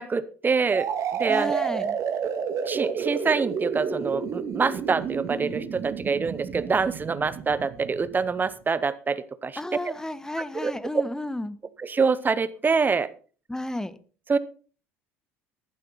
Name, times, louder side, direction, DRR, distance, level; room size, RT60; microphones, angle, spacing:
voice 1, 0.0-1.6 2.7-9.6 9.8-9.9 10.5-11.0 11.8-13.1 14.3-14.4, right 5 dB, 25° right, 0.9 m, -26 dB
sound 1, 0.7-8.4, right 7 dB, 50° right, 2.0 m, -30 dB
voice 2, 1.3-2.0 9.6-11.6 13.5-14.0, left 1 dB, 10° left, 1.1 m, -32 dB
14.5 x 12.0 x 4.1 m
figure-of-eight pair, 60°, 7 cm